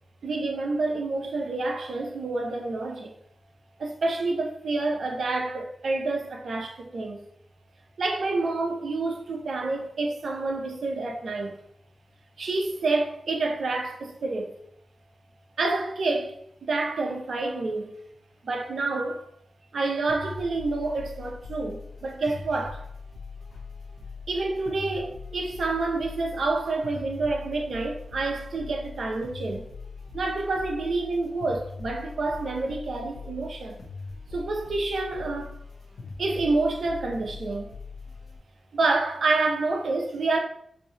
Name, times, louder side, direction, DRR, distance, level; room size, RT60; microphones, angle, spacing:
voice 1, 0.2-3.1 3.8-7.2 8.0-11.6 12.4-14.6 15.6-17.9 18.4-19.3 19.7-22.9 24.3-29.7 30.1-33.8 34.3-35.6 36.2-37.7 38.7-40.4, right 3 dB, 80° right, 0.7 m, -28 dB
sound 1, 20.1-38.4, left 4 dB, 85° left, 0.9 m, -41 dB
5.2 x 2.8 x 2.9 m
cardioid pair, 40°, 0 cm